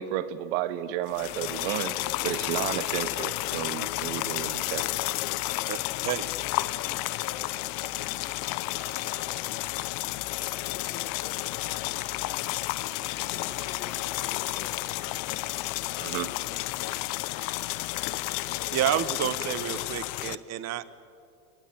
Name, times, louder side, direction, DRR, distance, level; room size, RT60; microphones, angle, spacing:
voice 1, 0.0-2.0 2.2-4.9 16.0-16.3, right 12 dB, 60° right, 12 dB, 1.9 m, -32 dB
sound 1, 1.1-20.4, left 19 dB, 50° left, 1.0 m, -31 dB
sound 2, 1.5-14.9, left 4 dB, 85° left, 4.8 m, -56 dB
voice 2, 6.7-7.4 8.1-12.5 13.1-15.3 15.9-18.2 18.5-19.1, left 7 dB, 30° left, 5 dB, 2.2 m, -47 dB
voice 3, 18.7-20.9, right 12 dB, 35° right, 14 dB, 1.5 m, -29 dB
30.0 x 20.0 x 9.2 m, 2.4 s
supercardioid pair, 130°, 44 cm